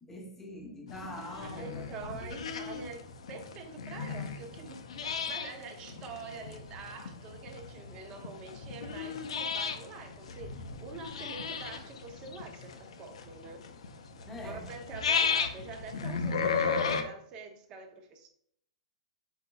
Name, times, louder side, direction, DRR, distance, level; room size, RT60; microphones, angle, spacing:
voice 1, 0.0-2.3 14.3-14.7, left 1 dB, 10° left, 0.8 m, -44 dB
sound 1, 0.9-17.0, left 5 dB, 80° left, 0.6 m, -35 dB
voice 2, 1.4-12.7 13.0-13.6 14.4-18.3, right 4 dB, 25° right, 0.6 m, -45 dB
4.7 x 4.2 x 2.3 m
hypercardioid pair, 150°, 3 cm